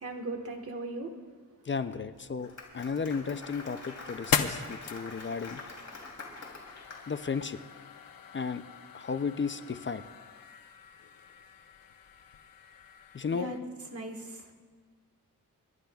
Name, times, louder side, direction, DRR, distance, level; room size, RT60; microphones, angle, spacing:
voice 1, 0.0-1.1 13.3-13.6 13.9-14.5, right 2 dB, 45° right, 3 dB, 1.5 m, -38 dB
voice 2, 1.7-5.6 7.1-7.6 8.3-8.6 8.9-10.0 13.1-13.5, left 5 dB, 35° left, 10 dB, 0.4 m, -34 dB
Applause, 2.2-7.3, left 3 dB, 50° left, 3.1 m, -45 dB
sound 1, 2.6-13.6, left 7 dB, 75° left, 0.8 m, -39 dB
29.0 x 12.0 x 2.3 m, 1.5 s
wide cardioid pair, 125°, 34 cm